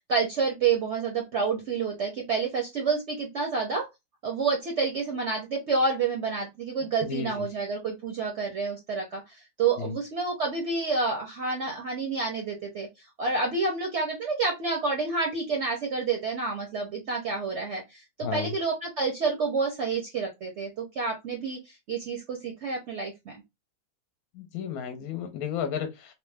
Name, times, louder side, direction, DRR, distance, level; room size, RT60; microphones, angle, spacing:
voice 1, 0.1-3.9 4.2-12.9 13.2-21.6 21.9-23.4, right 4 dB, 60° right, 0.7 m, -29 dB
voice 2, 7.0-7.5 9.8-9.9 18.2-18.5 24.3-26.1, left 7 dB, 70° left, 1.0 m, -33 dB
2.9 x 2.0 x 3.2 m
omnidirectional pair, 1.8 m